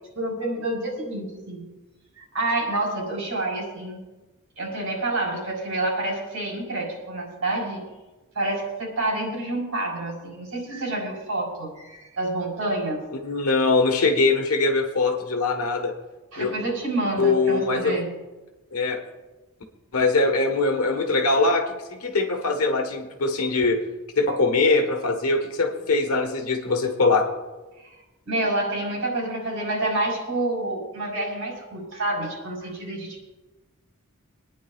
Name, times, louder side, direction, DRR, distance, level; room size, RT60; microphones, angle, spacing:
voice 1, 0.1-1.6 2.2-4.0 4.6-7.9 8.3-13.0 16.3-18.1 27.8-28.0 28.3-33.3, right 2 dB, 75° right, -1 dB, 4.3 m, -28 dB
voice 2, 13.2-15.9 16.4-16.5 17.2-17.9 18.7-19.0 19.9-23.8 24.2-27.3, left 3 dB, 90° left, 4 dB, 1.3 m, -22 dB
24.5 x 9.9 x 2.4 m, 1.1 s
head